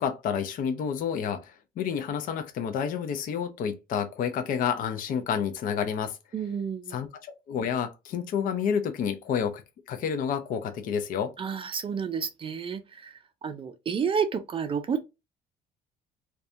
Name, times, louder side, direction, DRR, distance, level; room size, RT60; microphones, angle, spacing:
voice 1, 0.0-6.2 6.9-9.6 9.9-11.3, left 7 dB, 55° left, 0.4 m, -29 dB
voice 2, 6.3-7.0 11.4-15.0, right 6 dB, 30° right, 0.4 m, -30 dB
2.6 x 2.2 x 2.4 m
cardioid pair, 110°, 17 cm